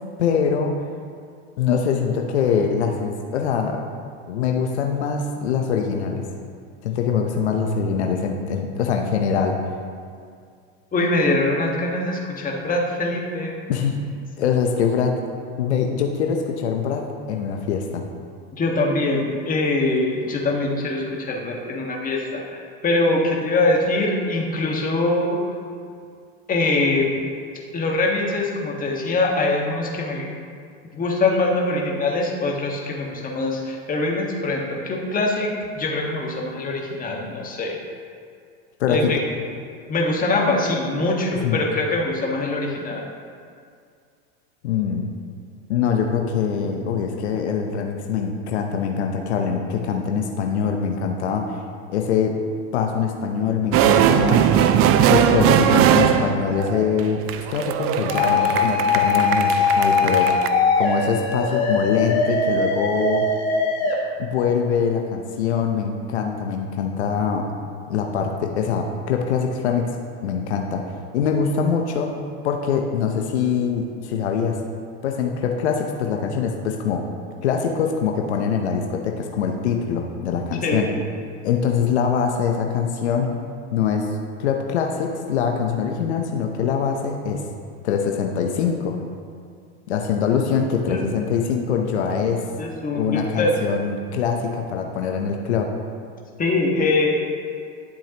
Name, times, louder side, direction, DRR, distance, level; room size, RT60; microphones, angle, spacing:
voice 1, 0.2-0.7 1.6-3.8 4.3-6.3 6.8-9.6 13.7-14.0 14.4-18.0 38.8-39.1 41.4-41.7 44.6-45.1 45.7-51.6 51.9-52.3 52.7-54.5 55.1-57.2 57.5-60.4 60.8-63.3 64.2-67.5 67.9-69.9 70.2-72.2 72.4-74.6 75.0-77.0 77.4-80.9 81.4-83.4 83.7-84.1 84.4-87.4 87.8-89.0 89.9-92.4 92.9-95.7, left 6 dB, 85° left, 3 dB, 0.8 m, -23 dB
voice 2, 10.9-13.6 18.6-25.5 26.5-27.1 27.7-30.2 30.9-35.5 35.7-37.8 38.9-39.2 39.9-43.0 80.6-80.9 90.9-91.0 92.6-93.5 96.4-97.2, left 2 dB, 25° left, -1 dB, 1.6 m, -23 dB
sound 1, 53.7-60.5, right 9 dB, 45° right, 0.5 m, -19 dB
sound 2, 58.1-63.9, left 4 dB, 50° left, 1.8 m, -21 dB
11.5 x 7.1 x 2.9 m, 2.2 s
hypercardioid pair, 95°, 33 cm